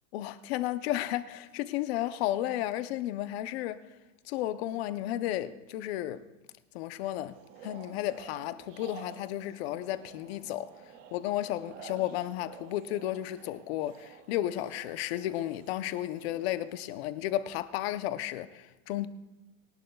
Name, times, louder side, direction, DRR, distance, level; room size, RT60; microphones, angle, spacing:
voice 1, 0.1-3.9 4.2-6.2 6.7-10.7 11.1-19.1, left 13 dB, 50° left, 0.7 m, -33 dB
sound 1, 7.3-16.8, right 6 dB, 55° right, 2.4 m, -51 dB
23.0 x 18.0 x 2.3 m
supercardioid pair, 165°, 42 cm